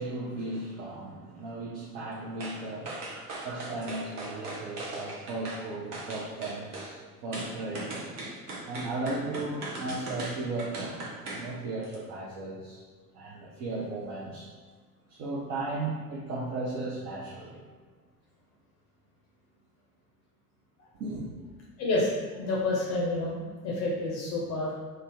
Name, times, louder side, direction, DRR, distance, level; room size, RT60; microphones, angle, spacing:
voice 1, 0.0-8.1 8.7-12.8 13.1-14.5 15.1-17.6 20.9-21.3, right 2 dB, 35° right, -5 dB, 0.5 m, -36 dB
sound 1, 2.4-2.6 2.8-5.6 5.9-6.9 7.3-11.5 11.8-12.0, right 2 dB, 75° right, 0.7 m, -38 dB
voice 2, 21.8-22.1 22.4-24.7, left 2 dB, 35° left, -5 dB, 0.6 m, -29 dB
2.5 x 2.0 x 3.3 m, 1.4 s
figure-of-eight pair, 70°, 46 cm